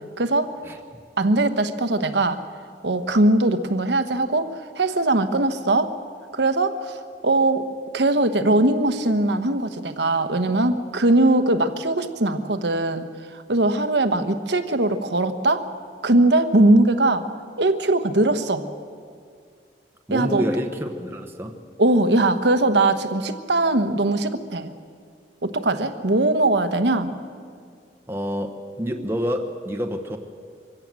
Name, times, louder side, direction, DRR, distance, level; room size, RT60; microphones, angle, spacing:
voice 1, 0.2-0.5 1.2-2.4 2.8-5.9 6.3-7.7 7.9-15.7 16.0-17.3 17.6-18.7 20.1-20.4 21.8-24.7 25.4-27.1, right 2 dB, 75° right, 10 dB, 1.2 m, -20 dB
voice 2, 20.1-21.6 28.1-30.2, equal, 15° right, 3 dB, 1.0 m, -28 dB
24.0 x 16.5 x 7.5 m, 2.2 s
head